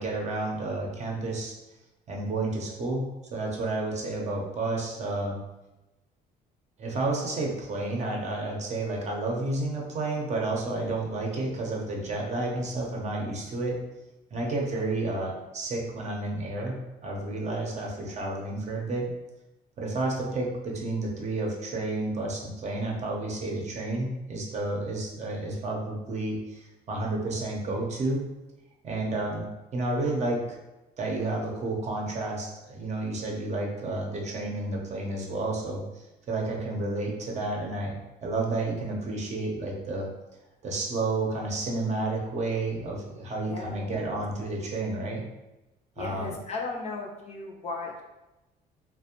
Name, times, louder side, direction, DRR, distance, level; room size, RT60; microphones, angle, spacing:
voice 1, 0.0-1.5 2.1-3.0 3.3-5.4 6.8-13.7 14.3-16.8 17.0-19.1 19.8-28.2 28.8-29.5 29.7-30.6 31.0-37.9 38.2-40.1 40.6-45.2 46.0-46.3, right 2 dB, 40° right, -1 dB, 0.6 m, -31 dB
voice 2, 43.5-44.1 46.0-48.0, left 3 dB, 40° left, -1 dB, 0.5 m, -36 dB
2.4 x 2.0 x 2.8 m, 1.0 s
cardioid pair, 110°, 17 cm